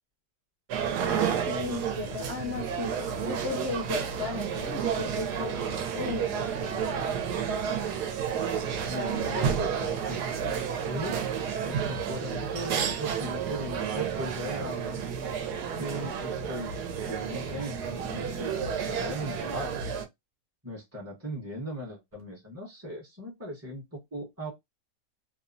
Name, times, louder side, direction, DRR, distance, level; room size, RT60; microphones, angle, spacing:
sound 1, 0.7-20.0, right 7 dB, 85° right, 1.1 m, -31 dB
voice 1, 1.0-2.9 3.2-7.1, left 4 dB, 65° left, 0.6 m, -36 dB
voice 2, 8.9-10.2 10.8-11.2 11.6-15.0 15.8-16.7 17.1-19.8 20.6-24.5, equal, 20° right, 0.4 m, -38 dB
2.9 x 2.1 x 2.5 m
omnidirectional pair, 1.7 m